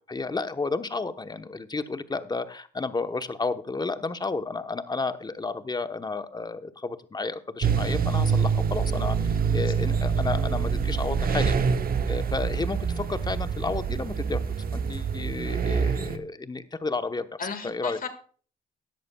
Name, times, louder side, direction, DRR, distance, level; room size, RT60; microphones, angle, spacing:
voice 1, 0.0-9.2 9.5-11.6 12.1-14.4 14.7-17.3 17.6-18.0, left 3 dB, 20° left, 10 dB, 1.0 m, -31 dB
sound 1, 7.6-16.2, right 6 dB, 50° right, 1.2 m, -26 dB
voice 2, 17.4-18.1, left 5 dB, 50° left, 9 dB, 1.9 m, -36 dB
15.5 x 11.0 x 2.3 m, 0.42 s
supercardioid pair, 60°, 19 cm